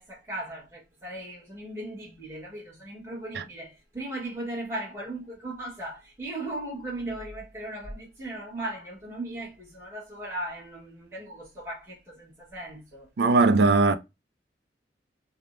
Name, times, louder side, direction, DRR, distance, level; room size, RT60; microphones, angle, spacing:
voice 1, 0.0-13.1, right 1 dB, 15° right, 1.0 m, -37 dB
voice 2, 13.2-14.0, right 3 dB, 65° right, 0.3 m, -19 dB
3.3 x 2.0 x 2.5 m
head